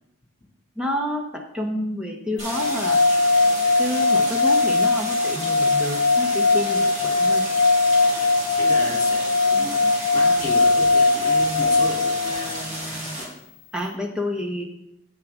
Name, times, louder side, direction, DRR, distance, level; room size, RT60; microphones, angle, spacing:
voice 1, 0.8-3.0 3.8-7.5 13.7-14.6, left 1 dB, 5° right, 1 dB, 0.9 m, -29 dB
Stream, 2.4-13.3, right 1 dB, 35° right, 2.1 m, -33 dB
sound 1, 2.5-12.6, left 3 dB, 65° left, 0.5 m, -20 dB
voice 2, 8.6-9.8 10.1-13.3, left 1 dB, 20° left, -2 dB, 2.6 m, -34 dB
8.5 x 8.4 x 3.6 m, 0.78 s
head